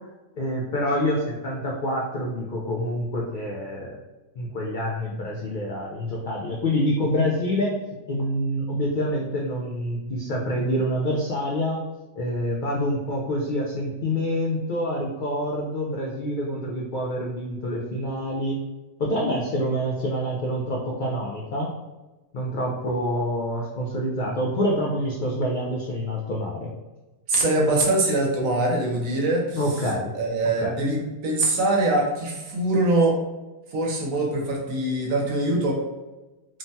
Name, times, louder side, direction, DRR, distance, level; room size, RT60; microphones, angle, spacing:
voice 1, 0.4-4.0 4.4-7.7 8.1-11.8 12.2-18.6 19.0-21.7 22.3-26.7 29.5-30.1 30.6-30.8, equal, 75° left, -3 dB, 0.4 m, -26 dB
voice 2, 27.3-29.6 30.1-33.2 33.7-35.8, right 2 dB, 80° right, -1 dB, 1.1 m, -23 dB
3.2 x 2.1 x 2.6 m, 1.1 s
omnidirectional pair, 1.4 m